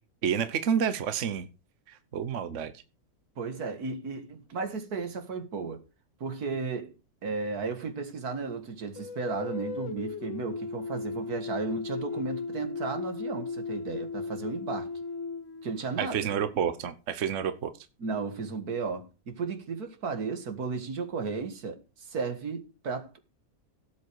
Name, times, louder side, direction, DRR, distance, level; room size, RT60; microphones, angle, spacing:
voice 1, 0.2-1.5 1.9-2.7 16.0-17.7, right 8 dB, 55° right, 1.3 m, -29 dB
voice 2, 3.4-5.8 6.2-6.9 7.2-14.9 15.6-16.3 18.0-23.2, right 4 dB, 80° right, 2.3 m, -34 dB
sound 1, 9.0-16.3, left 4 dB, 60° left, 1.5 m, -36 dB
17.0 x 8.0 x 4.8 m
omnidirectional pair, 1.6 m